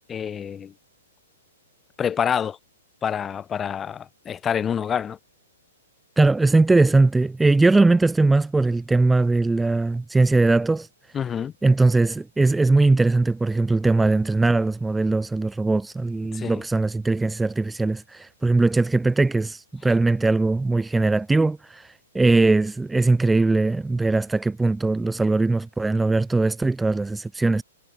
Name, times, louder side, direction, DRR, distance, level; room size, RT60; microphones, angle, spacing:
voice 1, 0.1-0.7 2.0-2.6 3.0-5.2 11.1-11.5 16.3-16.6, left 8 dB, 20° left, 2.9 m, -27 dB
voice 2, 6.2-10.9 11.6-27.6, right 3 dB, 5° right, 0.7 m, -20 dB
figure-of-eight pair, 110°, 0 cm